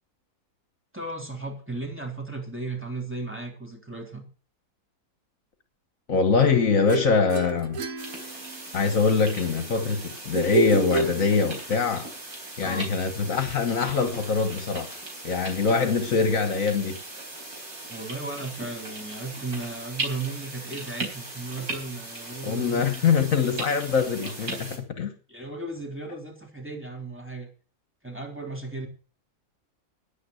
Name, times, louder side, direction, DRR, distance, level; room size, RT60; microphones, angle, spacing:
voice 1, 0.9-4.3 12.6-12.9 17.9-23.2 24.2-24.3 25.3-27.5 28.0-28.9, right 3 dB, 10° right, 3.5 m, -35 dB
voice 2, 6.1-7.8 8.7-12.1 12.6-15.0 15.2-17.0 22.4-25.1, left 5 dB, 65° left, 1.7 m, -23 dB
sound 1, 6.9-8.8 10.3-11.9, right 3 dB, 70° right, 1.4 m, -29 dB
sound 2, 8.0-24.8, right 2 dB, 90° right, 4.8 m, -38 dB
10.0 x 9.5 x 8.0 m
omnidirectional pair, 1.6 m